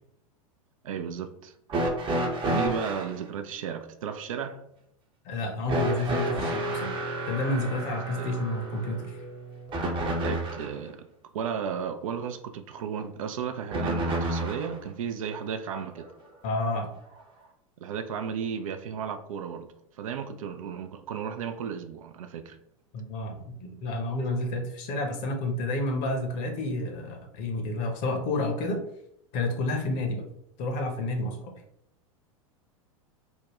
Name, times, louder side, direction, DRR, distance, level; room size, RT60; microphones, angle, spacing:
voice 1, 0.8-1.5 2.5-4.6 8.2-8.3 10.2-11.1 11.3-16.1 17.8-22.6, right 7 dB, 70° right, 0.4 m, -34 dB
sound 1, 1.7-3.1 5.7-10.8 13.7-14.8 16.0-16.1 17.2-17.3, right 1 dB, 25° right, 0.7 m, -30 dB
voice 2, 5.2-7.0 7.3-9.2 16.4-16.9 22.9-28.8 29.3-30.2 30.6-31.4, left 2 dB, 45° left, 0.8 m, -30 dB
3.6 x 2.1 x 2.9 m
figure-of-eight pair, 90°, 18 cm